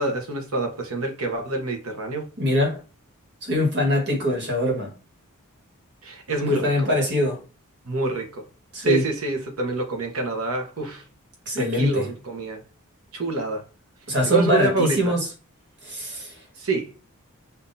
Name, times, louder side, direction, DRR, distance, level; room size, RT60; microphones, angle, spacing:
voice 1, 0.0-2.3 6.0-6.9 7.8-8.5 8.8-11.0 11.6-12.6 13.1-13.6 14.3-15.1 16.6-16.9, right 2 dB, 70° right, 1.1 m, -27 dB
voice 2, 2.4-2.8 3.4-4.9 6.5-7.4 8.7-9.0 11.4-12.1 14.1-15.3 15.8-16.4, equal, 55° right, 1.7 m, -23 dB
5.6 x 2.7 x 2.7 m
head